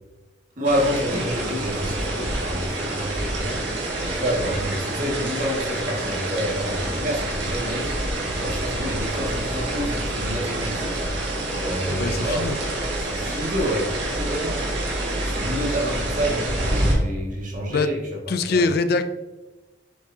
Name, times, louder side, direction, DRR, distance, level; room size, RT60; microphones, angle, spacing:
voice 1, 0.6-3.6 4.0-7.9 8.4-11.1 11.6-12.4 13.1-13.9 14.1-14.6 15.1-18.0 18.4-18.7, equal, 40° right, -2 dB, 2.0 m, -28 dB
sound 1, 0.6-16.9, right 1 dB, 65° right, 2.1 m, -27 dB
Wind, 4.2-17.1, equal, 80° right, 2.5 m, -38 dB
voice 2, 11.9-12.6 17.7-17.9 18.3-19.0, left 3 dB, 50° left, 11 dB, 0.4 m, -23 dB
7.4 x 7.2 x 2.8 m, 1.1 s
head